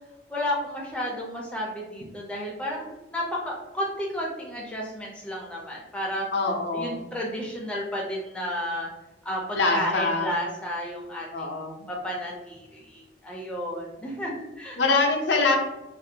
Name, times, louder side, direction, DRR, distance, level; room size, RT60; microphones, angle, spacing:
voice 1, 0.3-6.3 6.7-8.9 9.2-11.5 11.8-14.8, equal, 5° left, -3 dB, 0.3 m, -32 dB
voice 2, 6.3-7.0 9.5-10.3 11.3-11.8 14.8-15.6, left 3 dB, 75° left, 2 dB, 0.5 m, -24 dB
2.4 x 2.1 x 2.7 m, 1.0 s
head